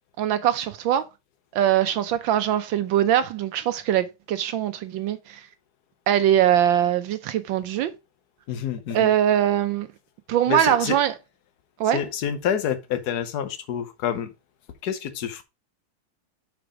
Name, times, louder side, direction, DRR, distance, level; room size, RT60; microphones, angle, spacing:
voice 1, 0.2-1.1 1.5-5.4 6.1-7.9 8.9-9.9 10.3-11.1 11.8-12.0, right 10 dB, 70° right, 1.3 m, -22 dB
voice 2, 8.5-9.1 10.5-11.0 11.9-14.3 14.8-15.4, left 8 dB, 55° left, 1.3 m, -28 dB
6.0 x 4.8 x 4.8 m
omnidirectional pair, 2.3 m